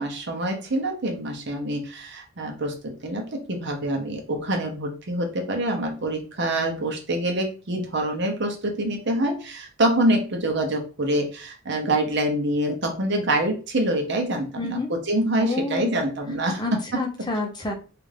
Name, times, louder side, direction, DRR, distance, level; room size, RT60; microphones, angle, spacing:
voice 1, 0.0-16.6 16.9-17.0, right 1 dB, 60° right, 3 dB, 0.8 m, -26 dB
voice 2, 14.6-14.9 15.4-15.9 16.6-17.7, left 3 dB, 20° left, 2 dB, 0.6 m, -29 dB
3.3 x 2.5 x 3.3 m, 0.35 s
head